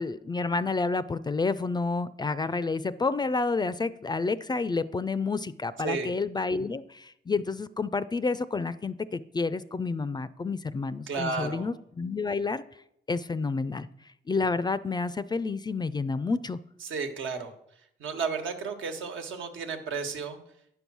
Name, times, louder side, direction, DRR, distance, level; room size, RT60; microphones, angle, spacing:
voice 1, 0.0-12.6 13.1-13.9 14.3-16.6, left 4 dB, 20° left, 15 dB, 0.4 m, -29 dB
voice 2, 11.1-11.7 16.8-17.5 18.0-20.4, right 5 dB, 75° right, 5 dB, 1.4 m, -32 dB
9.5 x 5.4 x 6.1 m, 0.76 s
cardioid pair, 90°, 20 cm